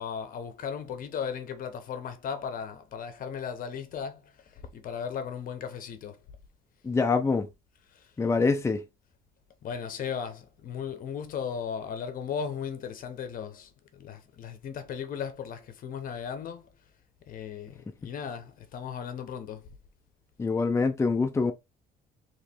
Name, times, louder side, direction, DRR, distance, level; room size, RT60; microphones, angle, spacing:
voice 1, 0.0-6.2 7.9-8.1 9.6-16.7 17.3-19.7, left 7 dB, 55° left, 1.0 m, -36 dB
voice 2, 6.8-7.5 8.2-8.8 20.4-21.5, left 4 dB, 15° left, 0.6 m, -25 dB
3.2 x 3.1 x 4.3 m
cardioid pair, 110°, 17 cm